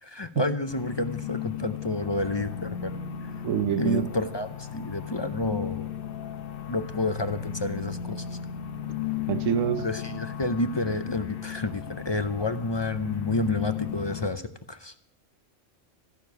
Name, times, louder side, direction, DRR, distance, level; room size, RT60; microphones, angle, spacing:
voice 1, 0.0-2.9 3.8-5.9 6.7-8.2 9.8-14.4 14.7-14.9, left 2 dB, 35° left, 0.4 m, -29 dB
sound 1, 0.7-14.3, left 9 dB, 55° left, 0.9 m, -35 dB
voice 2, 3.4-4.1 9.3-9.8, right 9 dB, 90° right, 1.2 m, -26 dB
15.0 x 6.7 x 9.3 m
omnidirectional pair, 1.3 m